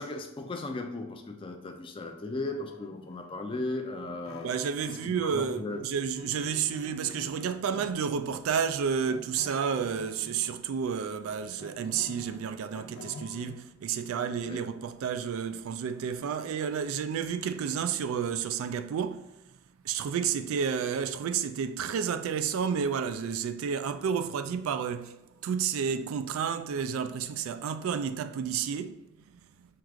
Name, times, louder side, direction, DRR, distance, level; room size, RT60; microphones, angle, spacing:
voice 1, 0.0-4.5 4.9-5.8 14.5-14.6, left 2 dB, 25° left, 0.4 m, -36 dB
sound 1, 2.4-5.3 5.5-8.2 9.1-10.6 11.1-13.6, left 2 dB, 85° left, 0.5 m, -48 dB
voice 2, 4.4-19.2 19.8-25.2 25.4-29.0, right 7 dB, 90° right, 0.3 m, -31 dB
4.6 x 2.4 x 3.6 m
head